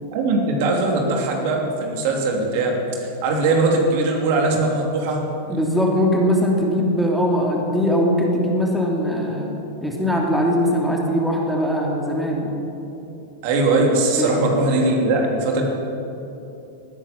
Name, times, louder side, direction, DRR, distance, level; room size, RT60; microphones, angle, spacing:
voice 1, 0.1-5.2 5.5-5.6 13.4-15.7, right 2 dB, 55° right, 1 dB, 2.9 m, -20 dB
voice 2, 5.5-9.5 9.8-12.5 14.2-14.4, equal, ahead, -2 dB, 3.0 m, -21 dB
18.5 x 9.8 x 7.2 m, 3.0 s
hypercardioid pair, 100°, 0 cm